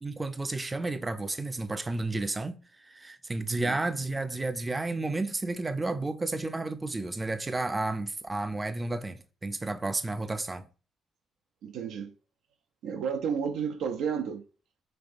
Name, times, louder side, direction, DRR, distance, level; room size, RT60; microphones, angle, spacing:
voice 1, 0.0-2.6 2.8-10.7, right 2 dB, 20° right, 0.4 m, -32 dB
voice 2, 11.6-12.1 12.8-14.4, right 7 dB, 85° right, 0.4 m, -32 dB
5.3 x 3.2 x 2.5 m
cardioid pair, 90°, 0 cm